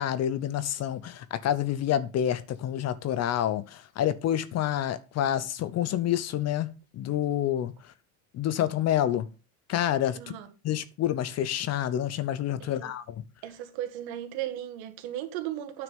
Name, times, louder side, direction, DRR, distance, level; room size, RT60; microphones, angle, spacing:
voice 1, 0.0-6.7 6.9-7.7 8.3-9.3 9.7-10.3 10.6-13.2, left 11 dB, 40° left, 0.8 m, -28 dB
voice 2, 10.1-10.5 12.6-12.9 13.4-15.8, right 12 dB, 60° right, 2.1 m, -36 dB
9.6 x 6.0 x 5.3 m
supercardioid pair, 110°, 41 cm